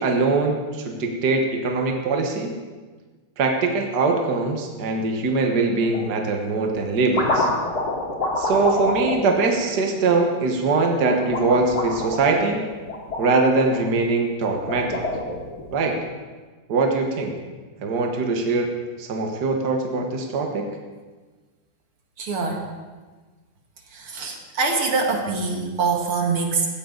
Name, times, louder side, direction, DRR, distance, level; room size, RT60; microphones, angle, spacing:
voice 1, 0.0-2.5 3.4-7.5 8.4-12.6 13.2-15.0 15.7-16.0 16.7-17.3 17.8-18.7 19.0-20.7, right 3 dB, 50° right, 2 dB, 1.9 m, -22 dB
sound 1, 5.8-6.1 6.7-10.3 11.1-13.8 14.4-15.7, left 2 dB, 45° left, 3.0 m, -27 dB
voice 2, 22.2-22.7 23.9-26.7, right 4 dB, 80° right, 1 dB, 2.7 m, -24 dB
16.5 x 15.0 x 4.0 m, 1.3 s
omnidirectional pair, 2.3 m